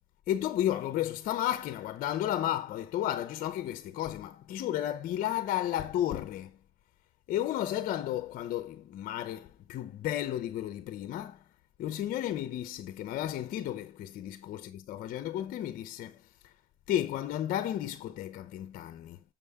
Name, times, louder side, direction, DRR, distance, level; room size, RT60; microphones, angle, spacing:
voice 1, 0.3-6.6 7.3-11.4 11.8-16.5 16.9-19.2, left 12 dB, 65° left, 0.8 m, -33 dB
7.3 x 7.0 x 3.6 m
supercardioid pair, 90°, 15 cm